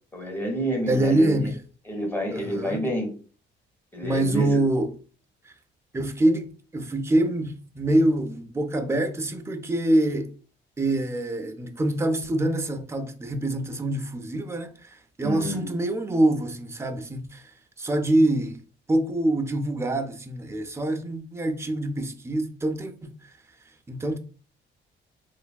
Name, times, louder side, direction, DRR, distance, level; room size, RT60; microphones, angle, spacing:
voice 1, 0.1-1.5 1.9-3.1 3.9-4.6 15.2-15.7, equal, 10° left, 1.1 m, -29 dB
voice 2, 0.9-1.6 2.3-2.8 4.0-5.0 5.9-10.3 10.8-17.4 17.8-18.6 18.9-23.2 23.9-24.2, right 1 dB, 15° right, 0.4 m, -25 dB
3.2 x 2.5 x 2.2 m
cardioid pair, 90°, 20 cm